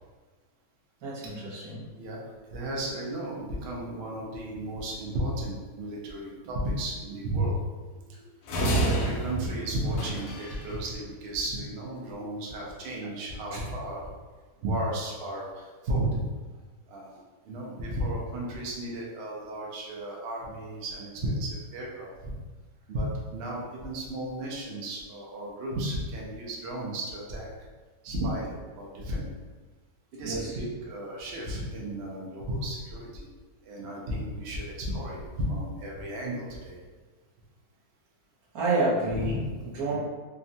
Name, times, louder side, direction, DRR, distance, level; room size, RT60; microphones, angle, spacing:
voice 1, 1.0-1.8 7.9-8.0 12.0-12.2 13.0-13.1 13.5-13.6 30.2-30.6 38.5-39.3 39.6-40.0, right 2 dB, 60° right, -8 dB, 1.4 m, -29 dB
voice 2, 2.5-7.6 8.1-8.2 8.8-14.1 14.6-16.3 16.9-22.3 22.9-27.5 28.0-29.2 30.1-33.3 33.6-36.8 39.1-39.6, right 1 dB, 85° right, -3 dB, 0.5 m, -34 dB
sound 1, 8.5-10.7, right 2 dB, 90° left, 1.3 m, -28 dB
3.4 x 2.1 x 2.6 m, 1.3 s
omnidirectional pair, 1.9 m